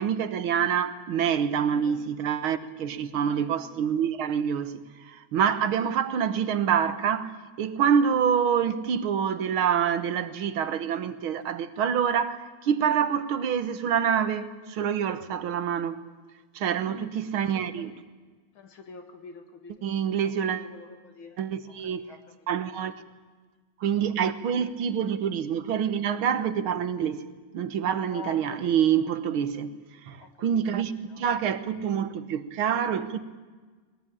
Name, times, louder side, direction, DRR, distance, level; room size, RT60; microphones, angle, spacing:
voice 1, 0.0-16.0 16.6-18.0 19.8-20.7 21.4-22.0 22.5-23.0 23.8-27.3 27.5-29.8 30.0-33.2, right 8 dB, 85° right, 2.0 m, -26 dB
voice 2, 1.7-2.1 3.1-3.6 16.8-17.5 17.7-17.8 18.5-19.7 20.6-21.4 21.9-22.2 22.5-22.6 28.0-28.7 30.2-30.6 31.1-31.2, left 4 dB, 80° left, 2.8 m, -45 dB
21.5 x 18.5 x 9.9 m
omnidirectional pair, 2.2 m